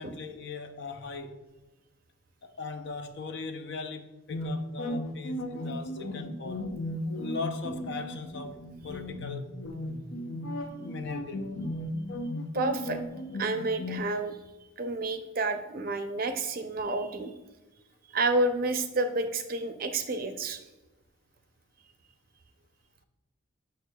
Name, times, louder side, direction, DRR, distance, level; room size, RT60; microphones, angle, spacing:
voice 1, 0.0-1.4 2.4-6.6 7.1-9.5 10.8-11.6, left 4 dB, 55° left, 0.5 m, -39 dB
sound 1, 4.3-14.0, left 1 dB, 80° left, 0.8 m, -35 dB
voice 2, 12.5-13.0 13.4-14.4 14.8-17.3 18.1-20.6, right 2 dB, 45° right, 0.5 m, -30 dB
6.5 x 6.5 x 2.2 m
head